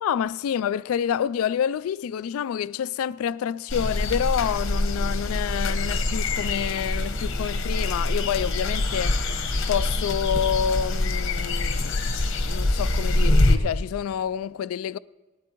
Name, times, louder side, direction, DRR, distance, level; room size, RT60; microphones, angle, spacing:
voice 1, 0.0-9.2 9.7-12.0 12.4-15.0, left 8 dB, 90° left, 0.3 m, -28 dB
sound 1, 3.7-13.6, left 2 dB, 65° left, 1.1 m, -25 dB
sound 2, 8.4-14.0, left 2 dB, 50° left, 0.8 m, -33 dB
19.0 x 13.0 x 3.0 m
head